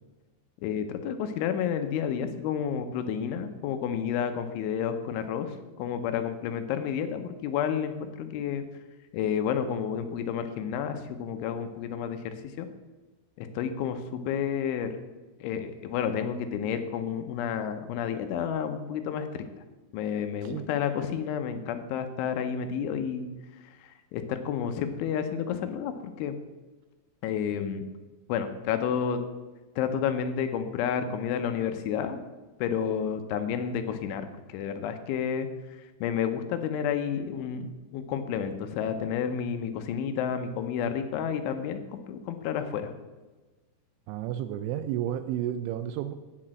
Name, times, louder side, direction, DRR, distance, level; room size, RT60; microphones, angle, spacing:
voice 1, 0.6-8.6 9.1-12.7 13.4-14.9 15.4-19.4 19.9-23.3 23.6-25.9 26.2-26.4 27.2-27.8 28.3-29.2 29.8-32.2 32.6-42.9, left 8 dB, 80° left, 8 dB, 3.1 m, -30 dB
voice 2, 44.1-46.2, right 11 dB, 85° right, 10 dB, 2.8 m, -32 dB
9.9 x 6.0 x 7.5 m, 1.2 s
omnidirectional pair, 5.7 m